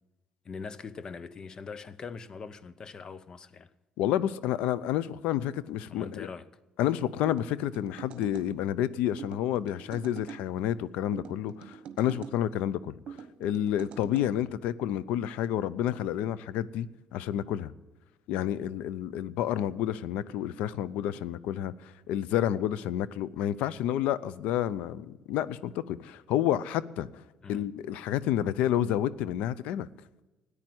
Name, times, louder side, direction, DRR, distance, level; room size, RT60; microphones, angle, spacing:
voice 1, 0.4-3.7 5.9-6.5 14.4-14.5 27.4-27.7, left 5 dB, 35° left, 0.8 m, -42 dB
voice 2, 4.0-6.3 6.8-17.7 18.3-27.1 27.5-29.9, left 11 dB, 85° left, 0.6 m, -30 dB
sound 1, 7.3-8.5 9.2-10.4 11.1-12.4 13.1-14.3, right 7 dB, 60° right, 1.2 m, -44 dB
13.5 x 9.8 x 7.8 m
cardioid pair, 105°, 2 cm